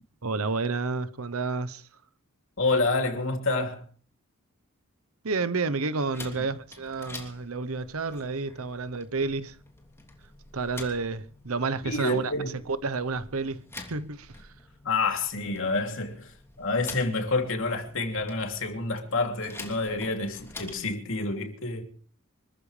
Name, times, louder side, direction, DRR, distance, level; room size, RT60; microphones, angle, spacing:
voice 1, 0.2-1.8 5.2-9.6 10.5-12.3 12.7-13.6 13.9-14.3, right 4 dB, 85° right, 1.0 m, -30 dB
voice 2, 2.6-3.9 6.3-6.4 11.8-12.6 14.8-21.8, left 3 dB, 65° left, 3.0 m, -28 dB
sound 1, 6.1-20.9, left 2 dB, 10° left, 2.9 m, -47 dB
26.0 x 14.0 x 3.3 m
head